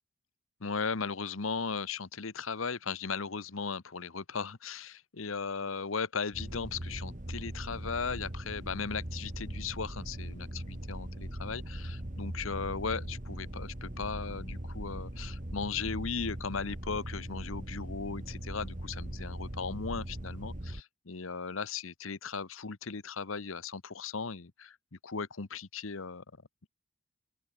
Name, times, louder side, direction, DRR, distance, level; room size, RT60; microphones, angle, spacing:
voice 1, 0.6-24.8 25.0-26.2, left 5 dB, 75° left, 1.1 m, -37 dB
sound 1, 6.3-20.8, right 1 dB, 40° right, 2.2 m, -40 dB
open air
head